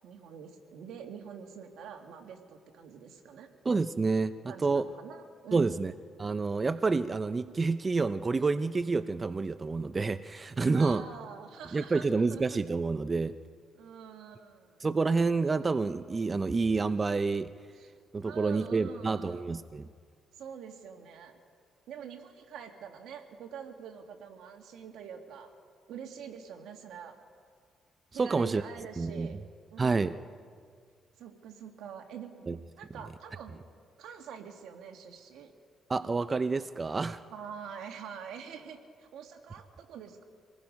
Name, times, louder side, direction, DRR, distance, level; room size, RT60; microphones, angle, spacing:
voice 1, 0.0-3.5 4.5-5.8 10.7-12.6 13.8-14.8 17.8-17.9 18.2-19.4 20.4-21.3 21.9-25.5 25.9-27.2 28.1-29.4 29.7-30.3 31.2-32.5 32.8-33.6 34.0-35.5 37.3-40.2, right 7 dB, 80° right, 4 dB, 2.1 m, -45 dB
voice 2, 3.6-4.8 5.5-5.9 6.2-11.0 11.7-13.3 14.8-17.5 18.1-19.9 28.1-28.6 29.0-29.3 29.8-30.2 32.5-32.6 35.9-37.2, right 4 dB, 30° right, 12 dB, 0.6 m, -28 dB
26.5 x 20.0 x 5.3 m, 2.1 s
cardioid pair, 90°, 0 cm